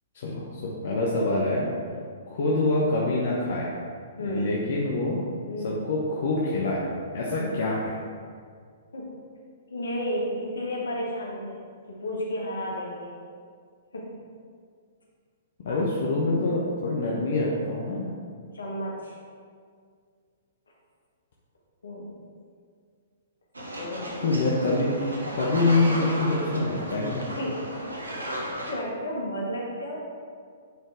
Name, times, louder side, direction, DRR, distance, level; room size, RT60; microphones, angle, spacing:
voice 1, 0.1-1.7 2.3-3.7 4.2-5.2 5.6-7.9 15.6-18.1 24.2-27.2, left 2 dB, 55° left, -4 dB, 1.0 m, -26 dB
voice 2, 4.2-4.5 5.5-5.7 7.4-7.5 8.9-9.1 9.7-11.6 11.9-13.1 13.9-14.2 15.7-15.8 18.5-19.2 21.8-22.1 23.8-24.4 25.8-26.3 27.3-27.8 28.1-30.1, equal, 75° left, -3 dB, 1.6 m, -33 dB
sound 1, 23.5-28.7, right 1 dB, 80° right, 1.2 m, -35 dB
9.3 x 4.5 x 3.5 m, 2.1 s
figure-of-eight pair, 115°, 0 cm